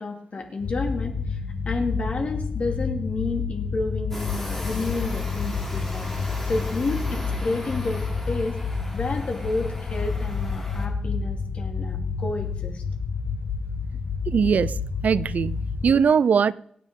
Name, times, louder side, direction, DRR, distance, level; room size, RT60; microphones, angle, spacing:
voice 1, 0.0-1.4 1.7-6.1 6.4-12.8, left 3 dB, 50° left, 2.4 m, -30 dB
sound 1, 0.6-15.9, left 5 dB, 80° left, 1.3 m, -29 dB
sound 2, 4.1-10.9, left 1 dB, 10° left, 3.1 m, -39 dB
voice 2, 14.3-16.5, right 6 dB, 70° right, 0.5 m, -21 dB
27.0 x 9.2 x 3.8 m
wide cardioid pair, 165°, 3 cm